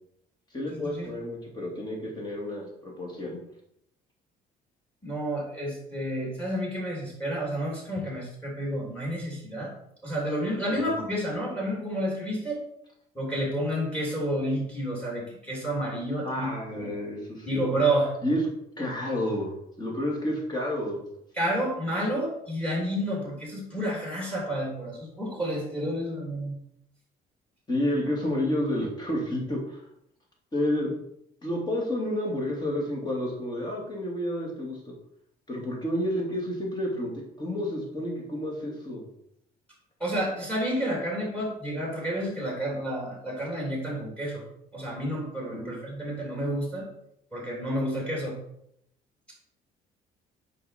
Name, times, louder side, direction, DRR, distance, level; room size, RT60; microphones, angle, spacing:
voice 1, 0.5-3.4 10.7-10.9 16.2-17.6 18.2-18.4 18.8-21.0 27.7-29.8 30.5-30.9 31.4-34.9 35.5-37.1 37.4-39.0 45.6-45.8, left 1 dB, 25° left, -1 dB, 2.6 m, -30 dB
voice 2, 5.0-9.7 10.0-12.6 13.1-16.9 17.5-18.1 21.4-26.5 40.0-44.4 44.7-46.9 47.3-48.4, right 1 dB, 5° left, -3 dB, 3.0 m, -30 dB
6.5 x 5.3 x 4.4 m, 0.75 s
cardioid pair, 110°, 17 cm